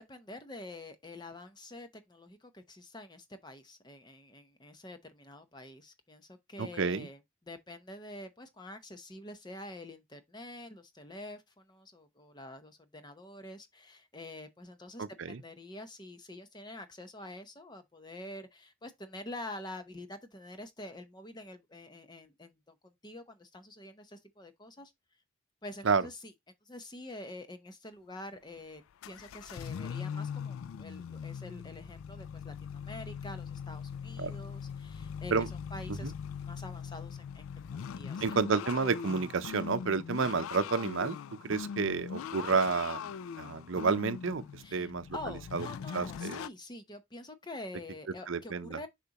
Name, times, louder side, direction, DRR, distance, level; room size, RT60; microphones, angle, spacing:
voice 1, 0.0-7.2 7.5-24.9 25.6-26.3 26.6-36.1 36.4-38.2 44.6-48.9, left 1 dB, 20° left, 0.7 m, -47 dB
voice 2, 6.6-7.1 15.0-15.4 25.8-26.1 34.2-34.4 35.3-35.5 35.9-36.1 38.2-41.2 41.4-45.1 45.5-45.7 45.9-46.4 48.3-48.8, right 4 dB, 75° right, 0.6 m, -30 dB
sound 1, 28.3-28.6 29.0-46.5, left 7 dB, 90° left, 0.3 m, -41 dB
6.7 x 5.0 x 2.9 m
head